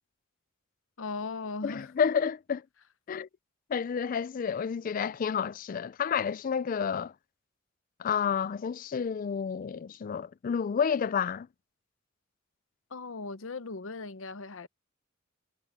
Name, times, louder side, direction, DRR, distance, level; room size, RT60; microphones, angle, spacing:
voice 1, 1.0-1.9 12.9-14.7, left 3 dB, 75° left, 0.9 m, -38 dB
voice 2, 1.6-2.6 3.1-3.3 3.7-7.1 8.0-11.5, left 7 dB, 45° left, 0.3 m, -30 dB
head